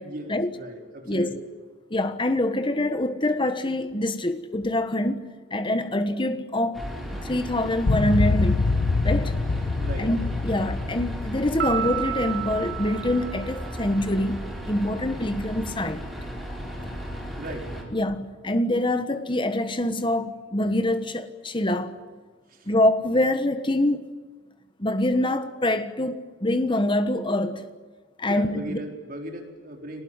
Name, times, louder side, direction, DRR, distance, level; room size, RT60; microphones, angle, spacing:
voice 1, 0.0-1.4 9.8-10.1 17.4-17.8 22.5-22.7 28.2-30.0, right 1 dB, 50° right, 4.1 m, -37 dB
voice 2, 1.9-6.8 7.2-8.7 9.0-9.4 10.0-16.0 16.8-16.9 17.9-21.9 22.7-24.1 24.8-27.7 28.2-28.8, left 1 dB, 25° left, 1.3 m, -25 dB
sound 1, 6.7-17.8, equal, ahead, 5.2 m, -35 dB
sound 2, 7.9-13.2, left 3 dB, 75° left, 0.7 m, -26 dB
Piano, 11.6-14.2, right 12 dB, 65° right, 3.4 m, -32 dB
25.0 x 19.5 x 9.8 m
head